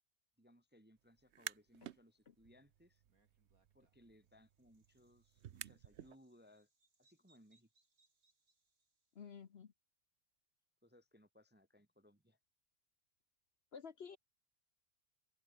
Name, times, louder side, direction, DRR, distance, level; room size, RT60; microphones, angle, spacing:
voice 1, 0.4-3.0 3.7-6.7 7.0-7.7 10.8-12.4, equal, 10° right, 0.9 m, -66 dB
sound 1, 1.2-2.0 2.4-6.2, right 11 dB, 60° right, 0.9 m, -52 dB
Bird vocalization bird call bird song, 3.0-9.3, right 3 dB, 75° right, 4.3 m, -80 dB
voice 2, 9.1-9.7 13.7-14.2, left 6 dB, 50° left, 1.1 m, -52 dB
omnidirectional pair, 1.5 m